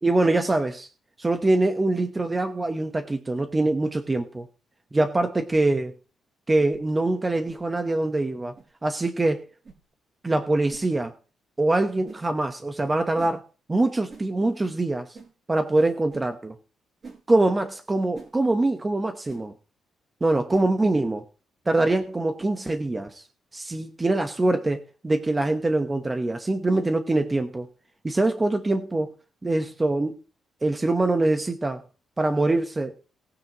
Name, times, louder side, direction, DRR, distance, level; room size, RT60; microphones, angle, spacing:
voice 1, 0.0-0.9 1.2-4.5 4.9-5.9 6.5-8.5 8.8-9.5 10.2-11.1 11.6-13.4 13.7-15.1 15.5-16.5 17.3-19.5 20.2-21.2 21.7-23.2 23.5-27.7 28.0-29.1 29.4-30.1 30.6-31.8 32.2-32.9, right 2 dB, 15° right, 6 dB, 1.1 m, -24 dB
sound 1, 6.6-6.8 7.4-7.6 8.5-8.7 9.6-9.8 10.7-10.9 12.0-12.2 13.2-13.4 14.1-14.3 15.1-15.3 16.1-16.3 17.0-17.2 18.1-18.3 19.3-19.4 20.5-20.7, right 4 dB, 40° right, 5.9 m, -45 dB
18.5 x 9.8 x 3.1 m, 0.35 s
cardioid pair, 135°, 0 cm